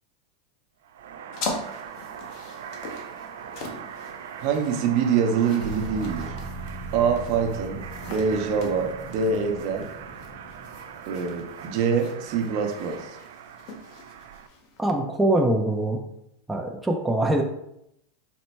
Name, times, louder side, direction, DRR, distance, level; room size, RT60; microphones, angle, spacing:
sound 1, 0.8-14.5, right 8 dB, 80° right, 0.3 m, -41 dB
sound 2, 1.3-14.8, left 3 dB, 55° left, 0.8 m, -42 dB
voice 1, 4.4-6.3 6.9-7.8 8.1-9.9 11.1-13.2, right 6 dB, 55° right, 4 dB, 0.7 m, -25 dB
sound 3, 5.6-12.1, right 2 dB, 30° right, 0.9 m, -40 dB
voice 2, 14.8-16.0 16.5-17.4, right 1 dB, 5° right, 1 dB, 0.5 m, -23 dB
4.3 x 2.1 x 4.3 m, 0.79 s
supercardioid pair, 120°, 0 cm